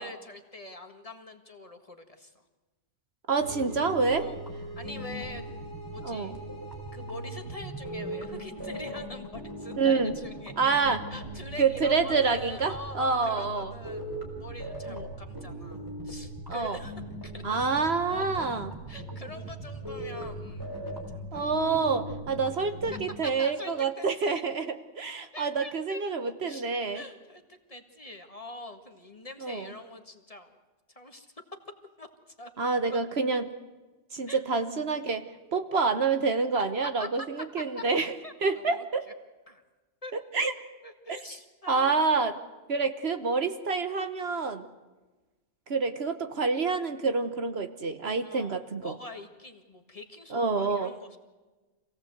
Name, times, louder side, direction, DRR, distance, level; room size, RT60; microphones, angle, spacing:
voice 1, 0.0-2.3 4.2-4.4 4.8-5.5 5.9-6.3 6.9-16.9 17.2-17.4 18.1-20.7 20.9-21.5 23.2-24.4 25.3-26.7 26.9-30.6 30.9-31.3 32.0-32.1 32.4-32.7 34.3-34.4 36.8-37.3 37.8-37.9 38.2-38.8 39.5-39.6 40.0-40.2 40.8-41.9 48.2-51.2, left 1 dB, 30° left, 5 dB, 1.8 m, -44 dB
voice 2, 3.3-4.3 6.0-6.3 9.8-10.1 10.6-11.0 11.6-13.7 14.9-15.0 16.5-16.8 17.4-18.7 21.3-24.7 25.0-27.0 29.4-29.7 32.6-33.5 34.1-38.1 38.4-39.1 40.3-40.5 41.1-41.2 41.7-42.3 42.7-44.7 45.7-48.9 50.3-50.9, right 4 dB, 55° right, 9 dB, 1.3 m, -27 dB
sound 1, 3.4-23.1, right 1 dB, 15° right, 4.5 m, -39 dB
26.0 x 17.0 x 8.0 m, 1.2 s
omnidirectional pair, 1.3 m